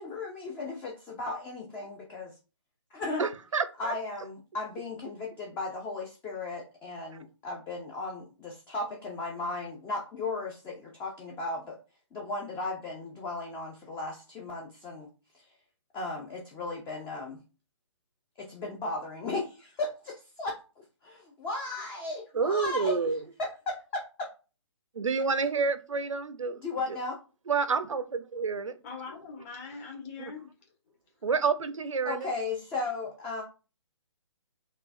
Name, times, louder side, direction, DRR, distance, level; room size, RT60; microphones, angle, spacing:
voice 1, 0.0-2.3 2.9-3.3 3.8-11.8 12.1-15.1 15.3-15.5 15.9-17.4 18.4-23.0 23.4-24.3 26.6-27.2 32.0-33.4, left 3 dB, 10° left, 0.4 m, -36 dB
voice 2, 3.2-3.9 22.3-23.2 24.9-26.6 26.9-27.0 27.5-28.7 31.2-32.3, right 5 dB, 85° right, 0.5 m, -29 dB
voice 3, 28.8-30.5, left 5 dB, 30° left, 1.2 m, -42 dB
3.7 x 2.3 x 2.5 m
figure-of-eight pair, 145°, 16 cm